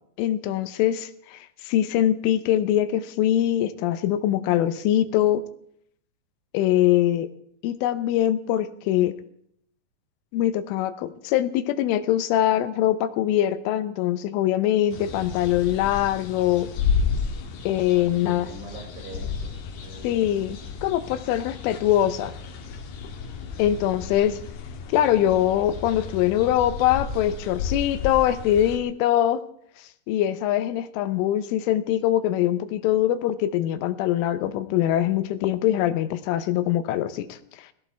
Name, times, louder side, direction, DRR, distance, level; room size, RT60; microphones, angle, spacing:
voice 1, 0.2-5.4 6.5-7.3 7.6-9.2 10.3-16.7 17.6-18.5 20.0-22.3 23.6-24.4 24.9-29.4 30.1-37.7, left 12 dB, 85° left, 12 dB, 3.4 m, -23 dB
sound 1, 14.9-28.8, left 5 dB, 65° left, 3.3 m, -32 dB
voice 2, 17.9-20.2, right 3 dB, 70° right, -1 dB, 7.7 m, -43 dB
21.5 x 17.0 x 3.5 m, 0.70 s
omnidirectional pair, 5.5 m